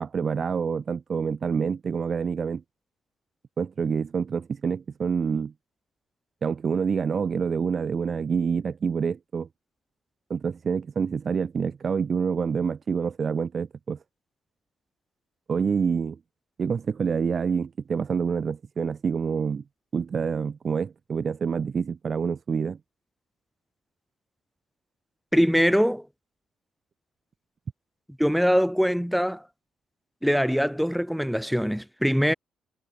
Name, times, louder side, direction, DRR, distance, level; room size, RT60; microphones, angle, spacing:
voice 1, 0.0-2.6 3.6-5.5 6.4-9.5 10.3-14.0 15.5-16.2 16.6-19.6 19.9-22.8, right 6 dB, 45° right, 1.2 m, -27 dB
voice 2, 25.3-26.1 28.2-29.4 30.2-32.3, equal, ahead, 0.4 m, -22 dB
cardioid pair, 90°, 0 cm